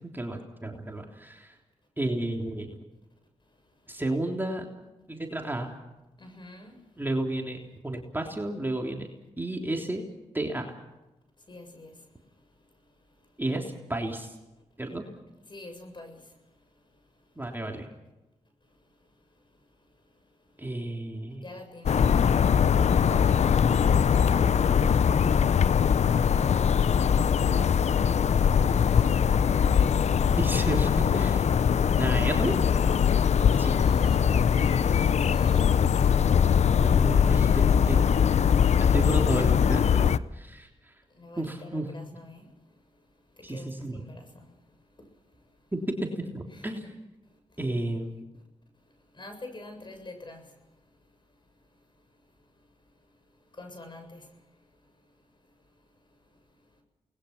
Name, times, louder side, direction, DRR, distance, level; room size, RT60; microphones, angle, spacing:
voice 1, 0.1-1.6 2.0-2.8 3.9-4.7 5.1-5.7 7.0-7.6 7.8-9.1 9.4-10.0 10.3-10.7 13.4-14.3 14.8-15.1 17.4-17.9 20.6-21.4 30.4-31.5 32.0-32.6 32.8-32.9 33.6-33.8 36.8-38.3 38.8-40.9 41.4-41.9 43.4-44.0 45.7-46.8 47.6-48.2, right 1 dB, 15° right, 1 dB, 3.5 m, -32 dB
voice 2, 6.2-6.8 11.5-11.9 15.5-16.2 21.4-22.6 33.8-36.3 41.2-42.5 43.5-44.5 46.5-46.9 49.1-50.4 53.6-54.2, left 2 dB, 40° left, 5 dB, 7.4 m, -45 dB
sound 1, 21.9-40.2, left 7 dB, 65° left, 0.7 m, -22 dB
29.0 x 20.5 x 5.9 m, 1.0 s
cardioid pair, 50°, 13 cm